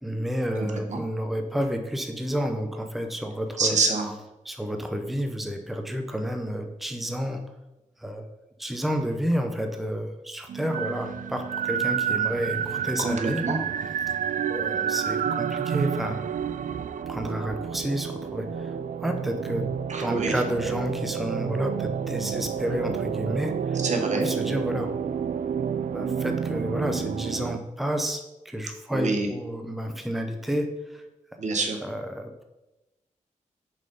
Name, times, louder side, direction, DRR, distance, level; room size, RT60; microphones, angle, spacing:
voice 1, 0.0-3.8 4.5-7.4 8.0-8.3 8.6-13.4 14.5-16.2 17.1-19.7 20.0-23.8 24.2-24.9 25.9-31.0 31.8-32.4, equal, ahead, 5 dB, 0.7 m, -30 dB
voice 2, 3.6-4.1 13.0-13.6 19.9-20.3 23.8-24.3 28.9-29.3 31.4-31.8, right 3 dB, 65° right, 4 dB, 1.3 m, -26 dB
sound 1, 10.5-27.6, right 8 dB, 80° right, 0.4 m, -30 dB
7.3 x 5.4 x 5.4 m, 1.0 s
wide cardioid pair, 145°, 13 cm